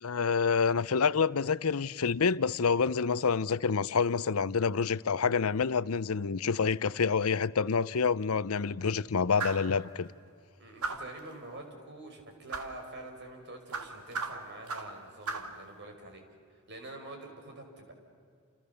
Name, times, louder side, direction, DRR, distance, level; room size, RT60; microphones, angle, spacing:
voice 1, 0.0-10.1, left 5 dB, 75° left, 0.7 m, -27 dB
sound 1, 9.4-9.7 10.8-11.2 12.5-12.8 13.7-15.0 15.3-15.6, right 4 dB, 85° right, 2.3 m, -36 dB
voice 2, 10.6-16.2 16.5-17.9, right 2 dB, 55° right, 5.4 m, -46 dB
29.5 x 29.0 x 7.0 m
head